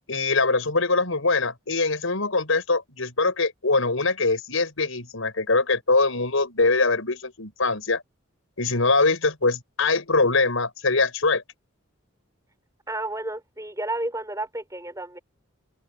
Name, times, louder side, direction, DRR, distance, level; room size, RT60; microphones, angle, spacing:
voice 1, 0.1-8.0 8.6-11.4, left 3 dB, 85° left, 5.2 m, -23 dB
voice 2, 12.9-15.2, right 2 dB, 15° right, 4.9 m, -31 dB
head